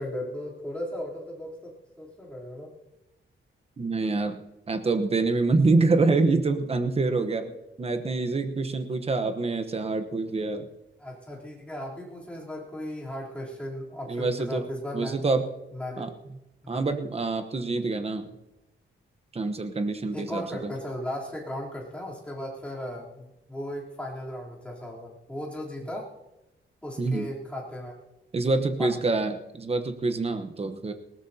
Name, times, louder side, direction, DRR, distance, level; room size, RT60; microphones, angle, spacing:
voice 1, 0.0-2.7 7.4-7.5 11.0-15.2 15.7-16.0 16.6-16.9 20.1-26.1 26.8-27.9 28.8-28.9, left 1 dB, 5° left, -5 dB, 3.5 m, -36 dB
voice 2, 3.8-4.4 4.7-7.4 7.8-10.7 14.1-14.6 14.9-15.4 16.0-16.1 16.7-18.3 19.3-20.7 27.0-27.3 28.3-30.9, right 3 dB, 30° right, 8 dB, 1.0 m, -26 dB
20.0 x 18.0 x 2.8 m, 0.98 s
wide cardioid pair, 160°, 21 cm